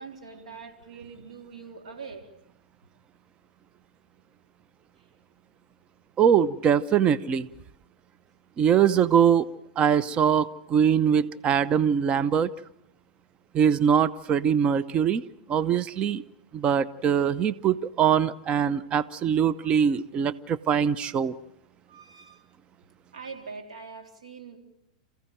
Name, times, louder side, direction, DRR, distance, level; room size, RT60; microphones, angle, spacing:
voice 1, 0.0-2.3 19.6-19.7 21.9-22.4 23.1-24.6, right 5 dB, 85° right, 3 dB, 3.9 m, -43 dB
voice 2, 6.2-7.5 8.6-9.5 9.8-12.5 13.5-15.2 15.5-16.2 16.5-21.3, right 8 dB, 30° right, 16 dB, 0.8 m, -22 dB
27.5 x 15.5 x 9.1 m, 0.82 s
hypercardioid pair, 110°, 4 cm